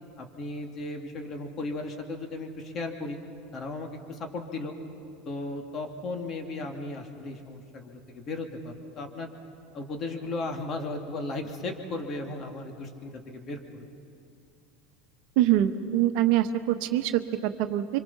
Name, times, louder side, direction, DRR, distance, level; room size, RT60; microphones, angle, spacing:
voice 1, 0.2-3.2 3.5-4.7 5.2-9.3 9.7-13.8, left 2 dB, 40° left, 3 dB, 2.7 m, -36 dB
voice 2, 15.4-18.0, right 12 dB, 65° right, 9 dB, 1.0 m, -24 dB
25.5 x 25.0 x 5.8 m, 2.5 s
hypercardioid pair, 85°, 0 cm